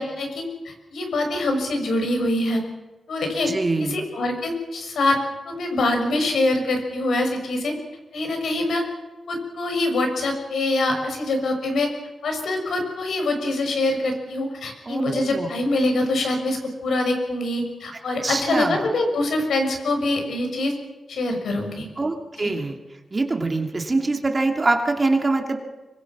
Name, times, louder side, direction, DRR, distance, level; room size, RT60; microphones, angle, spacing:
voice 1, 0.0-2.6 3.1-3.5 3.9-5.2 5.5-7.7 8.1-8.8 9.3-11.9 12.2-20.7 21.1-21.9 22.4-22.5, left 2 dB, 80° left, 4 dB, 6.3 m, -24 dB
voice 2, 3.5-4.0 14.8-15.5 18.2-18.7 22.0-22.8 23.1-25.6, right 3 dB, 30° right, 4 dB, 2.6 m, -24 dB
25.5 x 23.5 x 6.1 m, 1.2 s
cardioid pair, 90°, 0 cm